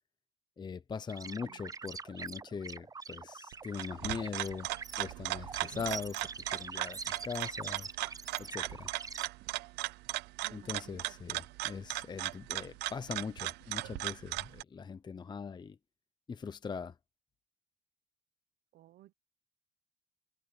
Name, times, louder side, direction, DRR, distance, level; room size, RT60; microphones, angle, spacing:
voice 1, 0.6-4.7 5.0-7.9 8.4-8.9 10.5-15.8 16.3-16.9, left 5 dB, 25° left, 0.8 m, -41 dB
sound 1, 1.1-9.3, right 5 dB, 20° right, 0.6 m, -45 dB
voice 2, 1.1-1.8 10.4-11.2 18.7-19.1, right 14 dB, 65° right, 1.0 m, -58 dB
sound 2, 3.5-14.6, right 18 dB, 85° right, 0.7 m, -38 dB
cardioid pair, 110°, 17 cm